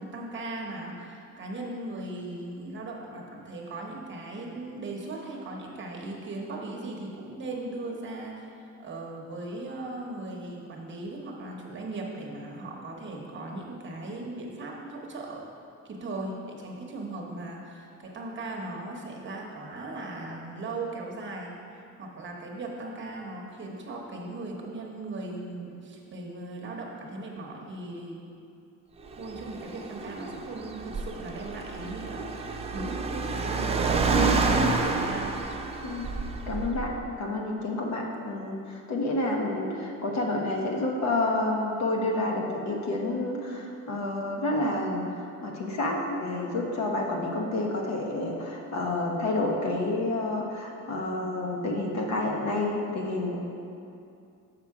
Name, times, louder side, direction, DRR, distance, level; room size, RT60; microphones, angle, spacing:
voice 1, 0.0-8.4 8.8-15.4 15.8-21.5 22.0-28.3 29.2-35.3, right 2 dB, 35° right, -1 dB, 1.0 m, -38 dB
Car, 29.1-37.0, right 3 dB, 20° right, 0.4 m, -29 dB
voice 2, 36.5-45.0 45.4-53.4, left 2 dB, 60° left, 0 dB, 1.1 m, -29 dB
6.8 x 5.6 x 4.7 m, 2.6 s
cardioid pair, 150°, 32 cm